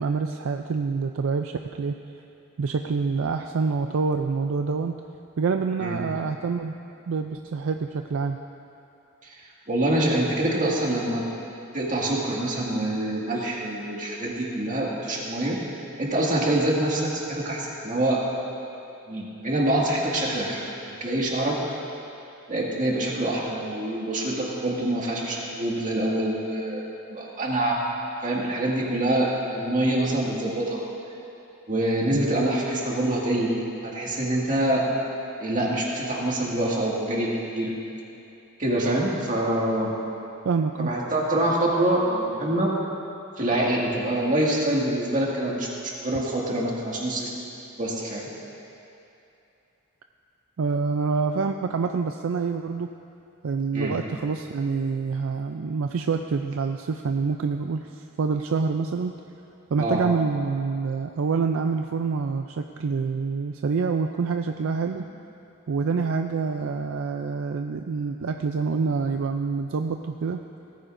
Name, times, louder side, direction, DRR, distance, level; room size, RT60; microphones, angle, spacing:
voice 1, 0.0-1.9 2.6-5.0 5.4-6.7 7.1-8.4 32.1-32.2 40.5-40.9 50.6-52.9 53.4-59.1 59.7-65.0 65.7-70.4, right 5 dB, 65° right, 6 dB, 0.4 m, -26 dB
voice 2, 9.7-11.2 11.7-15.6 16.0-18.2 19.1-20.6 21.0-21.6 22.5-27.8 28.2-30.8 31.7-33.5 33.8-34.9 35.4-37.7 38.6-39.9 40.8-42.7 43.4-45.7 46.0-47.3 47.8-48.3 53.7-54.0 59.8-60.0, right 1 dB, 35° right, -4 dB, 2.1 m, -25 dB
18.0 x 14.5 x 2.6 m, 2.7 s
head